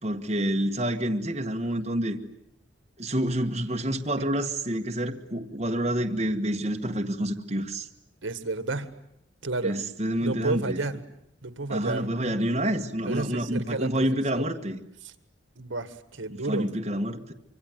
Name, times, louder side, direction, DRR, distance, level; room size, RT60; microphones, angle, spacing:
voice 1, 0.0-2.2 3.0-7.9 9.6-10.8 11.7-14.8 16.3-17.3, right 1 dB, 30° right, 2 dB, 1.5 m, -28 dB
voice 2, 8.2-8.9 9.4-9.8 10.2-11.0 11.4-12.1 13.1-14.1 14.3-14.4 15.0-15.1 15.6-16.7, right 3 dB, 75° right, 11 dB, 1.7 m, -31 dB
26.0 x 24.5 x 9.3 m, 0.74 s
head